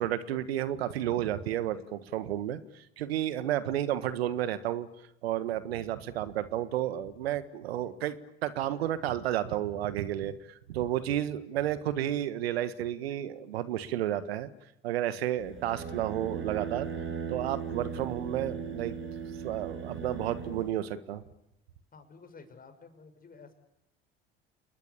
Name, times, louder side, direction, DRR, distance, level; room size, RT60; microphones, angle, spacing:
voice 1, 0.0-4.9 5.2-8.2 8.4-10.3 10.7-14.5 14.8-16.9 17.3-19.0 19.4-21.2, right 12 dB, 75° right, 14 dB, 1.6 m, -31 dB
sound 1, 15.4-20.7, right 6 dB, 40° right, 6.9 m, -38 dB
voice 2, 21.9-23.5, left 4 dB, 30° left, 8 dB, 6.3 m, -52 dB
29.0 x 21.0 x 8.5 m, 0.83 s
hypercardioid pair, 70°, 31 cm